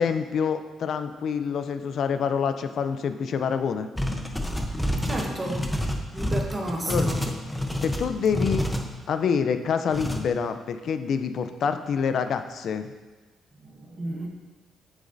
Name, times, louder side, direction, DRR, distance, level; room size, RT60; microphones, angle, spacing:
voice 1, 0.0-3.9 6.9-7.1 7.8-8.7 9.1-12.8, left 6 dB, 65° left, 9 dB, 0.5 m, -26 dB
sound 1, 4.0-8.8 9.9-10.2, left 1 dB, 5° left, 0.8 m, -28 dB
voice 2, 5.0-5.7 6.1-7.3 13.5-14.3, right 1 dB, 20° right, 0 dB, 1.1 m, -32 dB
8.1 x 7.3 x 2.6 m, 1.3 s
cardioid pair, 90°, 0 cm